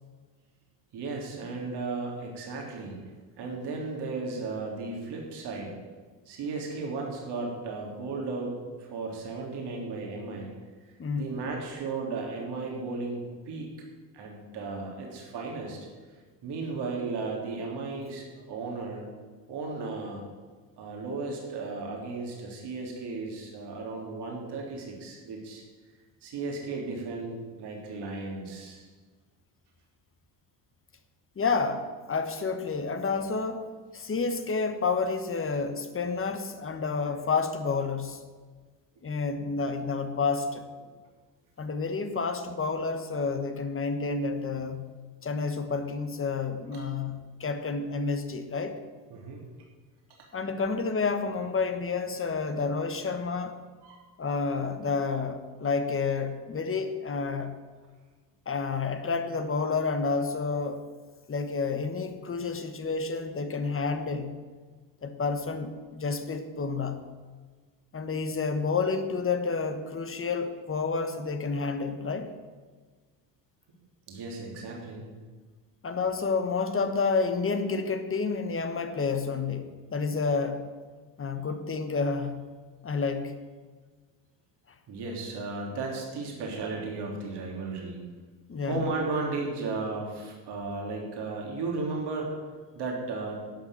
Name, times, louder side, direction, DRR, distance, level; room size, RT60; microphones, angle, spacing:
voice 1, 0.9-3.0 3.4-5.7 6.2-10.5 11.2-13.7 14.1-15.9 16.4-19.1 19.5-20.2 20.8-25.6 26.2-28.9 37.1-37.2 46.7-46.9 49.1-49.4 50.2-50.3 53.8-54.0 74.1-75.1 84.9-88.0 88.7-92.4 92.7-93.5, right 3 dB, 65° right, -1 dB, 3.3 m, -35 dB
voice 2, 11.0-11.4 31.4-33.7 33.9-38.2 39.0-40.7 41.6-44.9 45.2-48.8 50.3-53.6 54.2-57.6 58.5-60.9 61.3-64.4 65.0-67.1 67.9-72.3 75.8-80.7 81.2-82.5 82.8-83.3 88.5-88.9, left 4 dB, 30° left, 8 dB, 1.3 m, -30 dB
11.5 x 5.8 x 8.8 m, 1.4 s
supercardioid pair, 90°, 42 cm